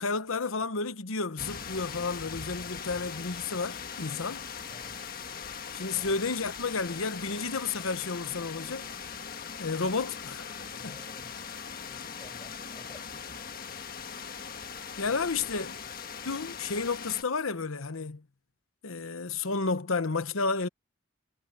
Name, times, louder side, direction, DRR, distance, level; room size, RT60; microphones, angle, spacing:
voice 1, 0.0-4.4 5.7-8.9 9.6-10.6 10.8-11.0 15.0-15.7 16.2-18.2 18.8-20.7, left 4 dB, 85° left, 1.1 m, -31 dB
sound 1, 1.4-17.2, left 6 dB, 45° left, 1.5 m, -40 dB
voice 2, 4.7-5.0 5.9-6.2 10.7-11.4 11.8-13.4 15.1-15.9, left 1 dB, 20° left, 6.2 m, -54 dB
head